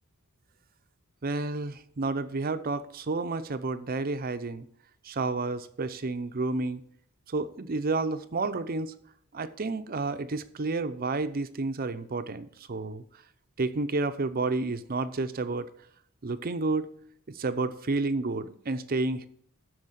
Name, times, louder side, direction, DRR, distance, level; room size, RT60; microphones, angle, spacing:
voice 1, 1.2-4.7 5.0-6.8 7.3-9.0 9.3-13.0 13.6-15.7 16.2-16.9 17.3-19.3, right 3 dB, 45° right, 0.6 m, -30 dB
12.0 x 4.7 x 6.4 m
head